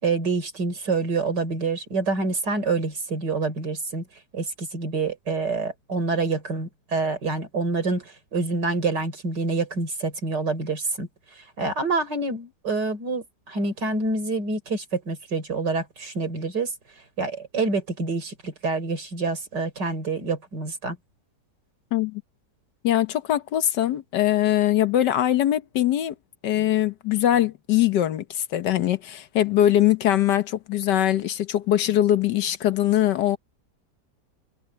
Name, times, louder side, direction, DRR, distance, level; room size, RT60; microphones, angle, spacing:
voice 1, 0.0-4.1 4.3-11.1 11.4-16.7 17.2-21.0, right 3 dB, 90° right, 4.8 m, -27 dB
voice 2, 21.9-22.2 22.8-26.1 26.4-33.4, left 12 dB, 90° left, 1.6 m, -22 dB
omnidirectional pair, 1.8 m